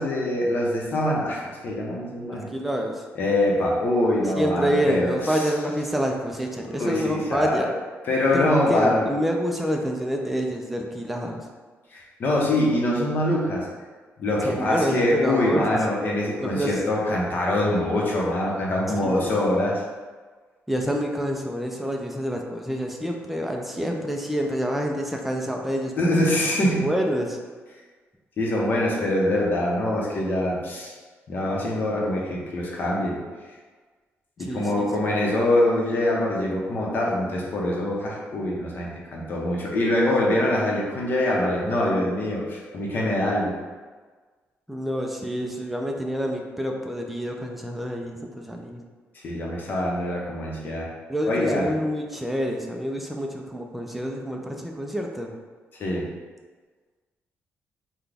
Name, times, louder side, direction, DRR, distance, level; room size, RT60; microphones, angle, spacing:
voice 1, 0.0-2.5 3.2-5.4 6.8-7.6 8.1-9.0 11.9-13.7 14.2-19.8 26.0-26.9 28.4-30.9 31.3-33.2 34.4-43.6 49.2-50.9 51.2-51.7 55.8-56.1, left 1 dB, 40° left, -3 dB, 0.8 m, -24 dB
voice 2, 2.3-3.1 4.2-7.7 8.3-11.5 14.4-15.8 16.4-16.8 19.0-19.4 20.7-26.2 26.7-27.4 34.4-34.9 44.7-48.8 51.1-55.3, equal, 5° right, 1 dB, 0.4 m, -27 dB
5.9 x 2.3 x 3.4 m, 1.4 s
wide cardioid pair, 175°, 5 cm